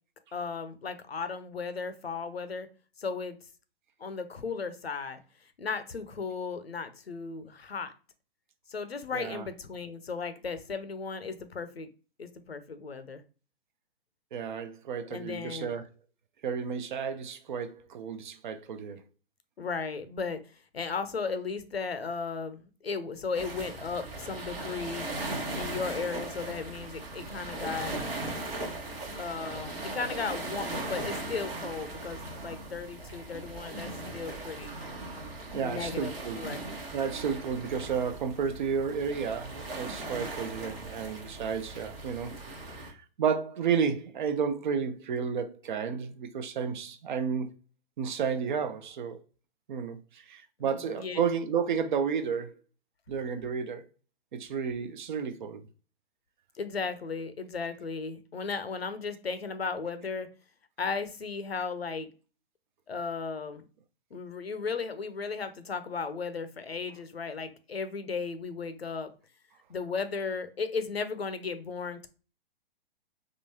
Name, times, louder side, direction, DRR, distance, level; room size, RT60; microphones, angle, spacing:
voice 1, 0.3-2.7 3.0-3.4 4.0-5.2 5.6-7.9 8.7-11.9 12.2-13.2 15.1-15.7 19.6-25.1 25.5-28.0 29.2-34.8 35.6-36.6 50.6-51.2 56.6-60.3 60.8-62.1 62.9-63.6 64.1-69.1 69.7-72.1, left 5 dB, 90° left, 0.6 m, -35 dB
voice 2, 9.1-9.4 14.3-15.8 16.4-19.0 34.8-34.9 35.5-36.4 36.9-42.3 42.7-47.6 48.0-49.2 49.7-52.5 53.1-53.8 54.3-55.7, right 6 dB, 55° right, 0.5 m, -32 dB
sound 1, 23.3-42.9, right 2 dB, 70° right, 1.1 m, -38 dB
3.6 x 2.4 x 2.8 m
figure-of-eight pair, 115°, 30 cm